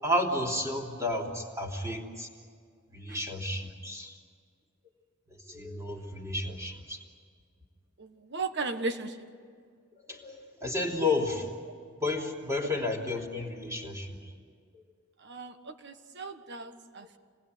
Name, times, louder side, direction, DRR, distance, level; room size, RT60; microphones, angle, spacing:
voice 1, 0.0-2.3 2.9-4.2 5.5-7.0 10.1-11.5 11.9-14.2, left 1 dB, 15° right, 0 dB, 3.2 m, -32 dB
voice 2, 8.0-9.1 15.2-17.2, right 3 dB, 50° right, 8 dB, 1.5 m, -36 dB
27.0 x 20.0 x 9.5 m, 2.1 s
head